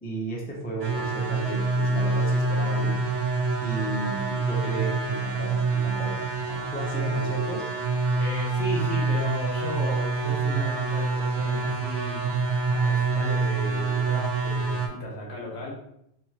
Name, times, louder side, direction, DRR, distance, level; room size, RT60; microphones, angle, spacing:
voice 1, 0.0-2.9 3.6-7.7, right 2 dB, 15° left, -1 dB, 0.4 m, -34 dB
sound 1, 0.8-14.9, right 3 dB, 70° right, 1.0 m, -26 dB
voice 2, 8.2-12.3 12.7-15.7, left 1 dB, 60° left, -2 dB, 1.3 m, -36 dB
4.2 x 2.9 x 2.9 m, 0.77 s
omnidirectional pair, 1.3 m